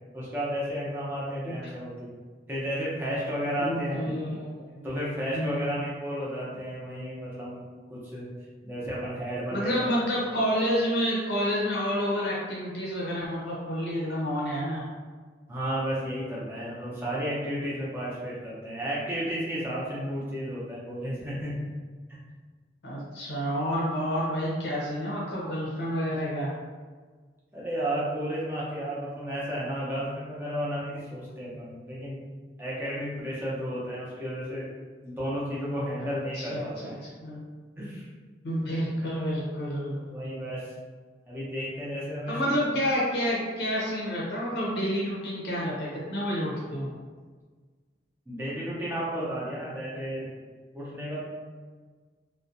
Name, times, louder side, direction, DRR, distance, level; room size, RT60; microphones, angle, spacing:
voice 1, 0.1-2.1 2.5-4.0 4.8-7.6 7.9-8.3 8.6-9.7 15.5-21.7 22.1-22.2 27.5-32.2 32.6-34.7 35.0-36.9 37.8-38.1 40.1-40.7 41.3-42.4 48.3-50.3 50.7-51.2, equal, 10° right, -8 dB, 0.6 m, -32 dB
voice 2, 3.6-4.9 5.3-5.8 9.5-14.8 22.8-26.5 36.0-36.9 37.2-37.4 38.4-40.0 42.3-46.9, equal, 65° left, -5 dB, 0.6 m, -29 dB
2.4 x 2.1 x 2.5 m, 1.5 s
head